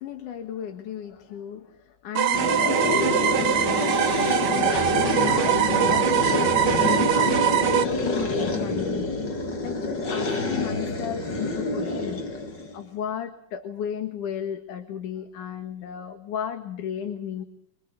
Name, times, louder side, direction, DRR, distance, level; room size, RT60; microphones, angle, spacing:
voice 1, 0.0-12.2 12.7-17.4, left 9 dB, 75° left, 6 dB, 3.1 m, -35 dB
sound 1, 2.1-7.8, right 10 dB, 55° right, 1.7 m, -23 dB
sound 2, 2.3-12.8, left 3 dB, 35° left, 2.5 m, -27 dB
25.0 x 24.5 x 6.7 m, 0.68 s
omnidirectional pair, 3.6 m